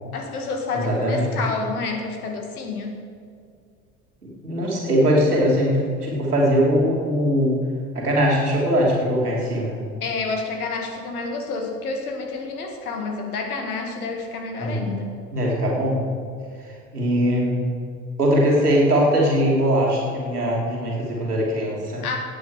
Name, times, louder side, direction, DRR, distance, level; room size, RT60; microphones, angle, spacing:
voice 1, 0.1-3.0 10.0-15.1 22.0-22.2, left 4 dB, 75° left, 3 dB, 1.8 m, -29 dB
voice 2, 0.7-1.3 4.4-7.6 7.9-9.8 14.6-14.8 15.3-16.0 16.9-17.6 18.2-22.0, equal, 85° right, -3 dB, 2.8 m, -21 dB
16.5 x 8.7 x 4.9 m, 2.2 s
figure-of-eight pair, 65°, 45 cm